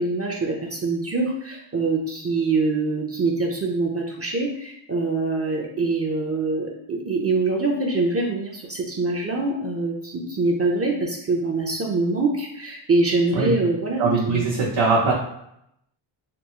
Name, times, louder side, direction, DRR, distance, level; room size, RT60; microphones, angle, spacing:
voice 1, 0.0-14.4, right 3 dB, 30° right, 0 dB, 0.5 m, -24 dB
voice 2, 14.0-15.1, right 4 dB, 60° right, -4 dB, 0.8 m, -21 dB
3.5 x 2.4 x 2.9 m, 0.77 s
wide cardioid pair, 100°, 49 cm